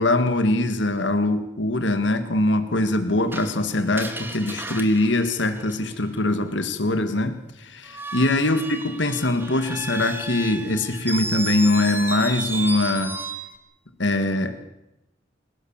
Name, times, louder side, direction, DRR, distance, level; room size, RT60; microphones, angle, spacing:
voice 1, 0.0-13.2 14.0-14.7, left 2 dB, 75° left, 9 dB, 2.0 m, -22 dB
Screech, 3.3-6.2 7.8-13.6, right 2 dB, 10° right, 2.3 m, -33 dB
27.5 x 17.5 x 7.3 m, 0.93 s
head